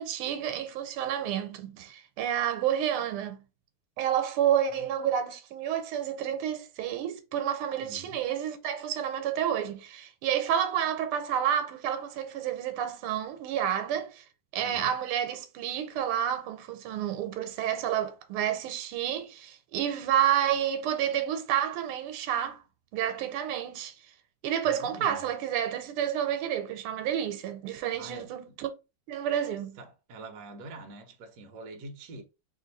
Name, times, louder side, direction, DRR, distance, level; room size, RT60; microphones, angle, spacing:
voice 1, 0.0-3.4 4.0-14.2 14.5-22.6 22.9-23.9 24.4-28.7 29.1-29.8, right 10 dB, 85° right, 1.6 m, -30 dB
voice 2, 7.8-8.2 14.6-14.9 24.6-25.3 28.0-28.6 29.8-32.2, right 2 dB, 60° right, 1.2 m, -45 dB
3.4 x 2.8 x 3.9 m
omnidirectional pair, 2.4 m